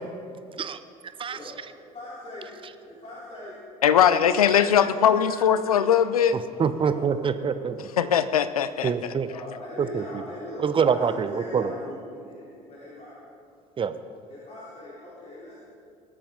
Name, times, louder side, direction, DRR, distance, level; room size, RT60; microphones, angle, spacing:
voice 1, 1.9-2.5 2.8-3.5 3.9-5.7 6.8-7.5 9.3-13.3 14.3-15.7, left 1 dB, 35° left, 3.4 m, -41 dB
voice 2, 3.8-6.4 8.0-8.9, left 8 dB, 85° left, 0.5 m, -20 dB
voice 3, 6.3-7.9 8.8-9.3 9.8-10.2 10.6-11.7 13.8-13.9, right 6 dB, 30° right, 0.7 m, -25 dB
20.0 x 8.6 x 3.7 m
hypercardioid pair, 60°, 18 cm